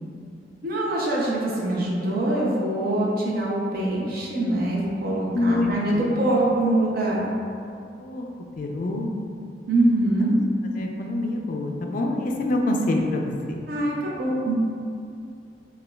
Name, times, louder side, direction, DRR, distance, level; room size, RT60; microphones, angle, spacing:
voice 1, 0.6-7.3 9.7-10.3 13.7-14.5, right 1 dB, 55° right, -4 dB, 0.6 m, -24 dB
voice 2, 5.3-6.1 8.0-8.3 8.6-9.1 10.8-13.6, left 2 dB, 50° left, 2 dB, 0.3 m, -26 dB
4.9 x 2.3 x 2.2 m, 2.4 s
head